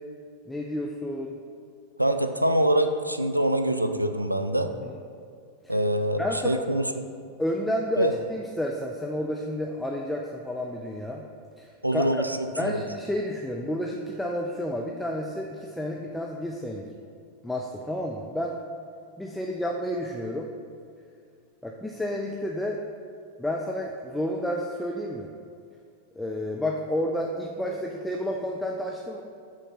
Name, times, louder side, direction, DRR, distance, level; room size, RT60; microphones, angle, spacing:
voice 1, 0.5-1.4 4.8-4.9 5.6-5.7 6.2-6.6 7.4-11.2 11.6-12.3 12.6-16.9 17.4-18.6 19.2-20.5 21.6-22.8 23.4-25.3 26.2-29.2, left 1 dB, 5° left, 0 dB, 0.4 m, -30 dB
voice 2, 2.0-4.7 5.7-7.0 8.0-8.1 11.8-12.8, right 1 dB, 85° right, 8 dB, 0.3 m, -25 dB
7.3 x 3.3 x 4.2 m, 2.3 s
figure-of-eight pair, 90°, 0 cm